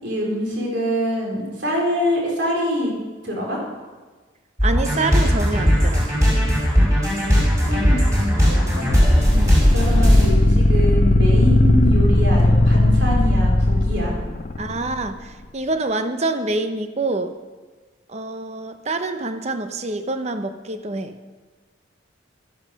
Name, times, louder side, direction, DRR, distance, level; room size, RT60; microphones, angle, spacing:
voice 1, 0.0-2.9 3.2-3.6 7.0-7.1 7.7-9.0 9.7-14.1, equal, 60° right, -2 dB, 4.2 m, -25 dB
sound 1, 4.6-10.3, equal, 15° right, 5.2 m, -17 dB
voice 2, 4.6-6.2 9.3-9.6 14.6-17.3 18.1-21.1, right 2 dB, 35° right, 8 dB, 0.8 m, -26 dB
sound 2, 8.9-15.1, left 1 dB, 40° left, 0.6 m, -17 dB
13.0 x 10.5 x 6.4 m, 1.3 s
head